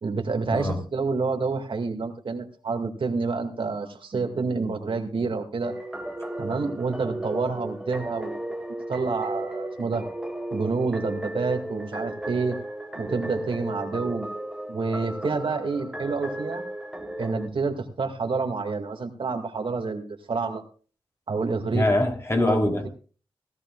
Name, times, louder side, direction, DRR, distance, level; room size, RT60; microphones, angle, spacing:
voice 1, 0.0-5.7 6.4-8.4 8.9-10.0 10.5-12.6 13.0-14.3 14.7-16.6 17.2-20.6 21.3-21.9 22.5-22.6, right 4 dB, 65° right, 4 dB, 2.2 m, -28 dB
sound 1, 5.6-17.5, right 1 dB, 5° right, 1.6 m, -35 dB
voice 2, 21.7-22.9, left 1 dB, 30° left, 2 dB, 3.2 m, -23 dB
17.0 x 15.0 x 2.4 m, 0.37 s
wide cardioid pair, 75°, 9 cm